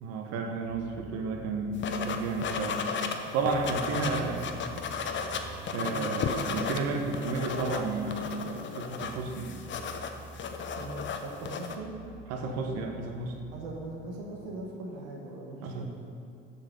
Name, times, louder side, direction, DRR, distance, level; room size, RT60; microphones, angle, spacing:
voice 1, 0.0-2.9 3.3-4.5 5.7-9.5 12.3-13.4 15.6-15.9, right 3 dB, 60° right, 4 dB, 1.0 m, -32 dB
sound 1, 0.6-14.5, right 2 dB, 70° left, 1.9 m, -50 dB
sound 2, 1.8-3.2 3.5-6.8 7.1-11.8, left 6 dB, 40° left, 0.8 m, -34 dB
sound 3, 4.8-11.6, right 2 dB, 25° right, 1.5 m, -51 dB
voice 2, 10.8-12.0 13.5-15.9, right 2 dB, 75° right, -1 dB, 1.3 m, -40 dB
7.2 x 5.4 x 6.5 m, 2.5 s
hypercardioid pair, 65°, 29 cm